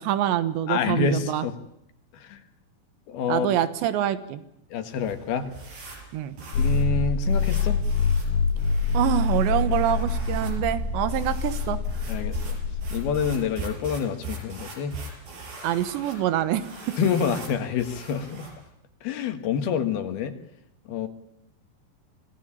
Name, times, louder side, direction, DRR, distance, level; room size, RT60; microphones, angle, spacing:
voice 1, 0.0-1.5 3.3-4.4 6.1-6.4 8.9-11.8 15.6-17.0, right 11 dB, 90° right, 13 dB, 3.5 m, -25 dB
voice 2, 0.7-1.5 2.1-2.4 3.1-3.5 4.7-5.5 5.8-5.9 6.6-7.8 12.1-12.6 12.9-15.0 17.0-18.5 19.0-20.3 20.9-21.1, left 7 dB, 65° left, 9 dB, 3.4 m, -27 dB
sound 1, 4.9-18.7, right 4 dB, 55° right, 6.9 m, -42 dB
sound 2, 6.5-13.4, left 4 dB, 85° left, 4.8 m, -25 dB
26.0 x 18.5 x 8.7 m, 0.80 s
omnidirectional pair, 5.0 m